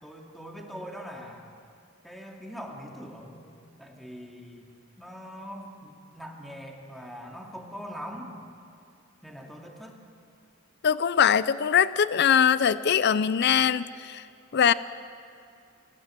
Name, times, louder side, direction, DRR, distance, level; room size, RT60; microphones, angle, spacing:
voice 1, 0.0-1.5 2.0-3.5 3.8-4.7 5.0-8.3 9.2-9.9, equal, ahead, 0 dB, 2.3 m, -42 dB
voice 2, 10.8-14.3 14.5-14.7, left 8 dB, 55° left, 16 dB, 0.5 m, -22 dB
28.0 x 17.5 x 7.5 m, 2.5 s
head